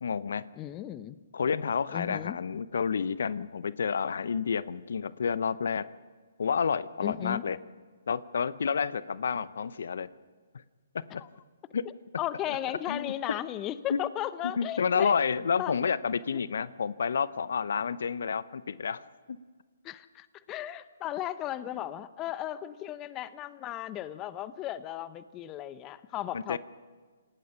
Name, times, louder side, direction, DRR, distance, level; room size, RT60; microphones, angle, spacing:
voice 1, 0.0-0.4 1.3-5.9 6.4-7.6 8.1-10.1 10.9-11.2 11.7-11.8 12.5-12.6 12.9-13.4 13.9-14.0 14.6-19.0 26.3-26.6, left 6 dB, 65° left, 17 dB, 0.7 m, -30 dB
voice 2, 0.6-1.2 1.9-2.4 7.0-7.5 11.2-11.3 12.2-15.1 15.6-15.7 16.3-16.4 19.8-26.6, left 12 dB, 25° left, 15 dB, 0.9 m, -35 dB
27.5 x 18.0 x 5.8 m, 1.5 s
figure-of-eight pair, 130°, 0 cm